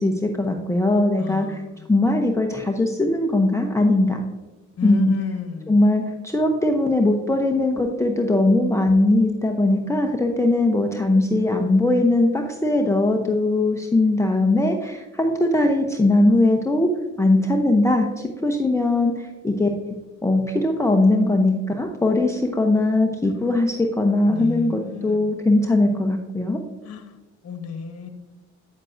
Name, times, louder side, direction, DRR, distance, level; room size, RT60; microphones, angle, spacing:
voice 1, 0.0-1.6 1.9-4.2 4.8-5.1 5.7-16.9 17.2-19.7 20.2-26.6, left 2 dB, 10° left, 2 dB, 0.7 m, -20 dB
voice 2, 1.2-1.7 4.8-5.7 23.4-23.6 24.3-25.4 26.8-27.2 27.4-28.1, left 6 dB, 55° left, 7 dB, 1.2 m, -32 dB
9.0 x 7.3 x 2.6 m, 1.2 s
cardioid pair, 90°, 30 cm